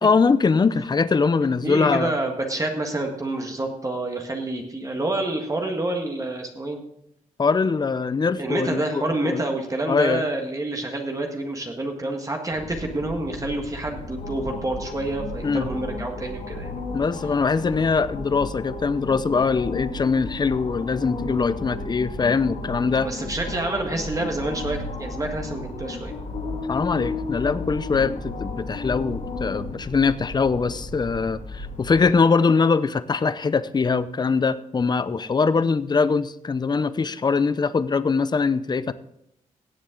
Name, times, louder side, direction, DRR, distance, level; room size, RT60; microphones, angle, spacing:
voice 1, 0.0-2.1 7.4-9.4 9.9-10.3 15.4-15.7 16.9-23.1 26.7-38.9, left 4 dB, 30° left, 15 dB, 0.6 m, -22 dB
voice 2, 1.6-6.8 8.4-16.8 23.0-26.1, right 2 dB, 25° right, 2 dB, 1.7 m, -28 dB
sound 1, 12.5-32.0, left 2 dB, 80° left, 3.2 m, -34 dB
17.0 x 7.5 x 3.8 m, 0.75 s
cardioid pair, 90°, 14 cm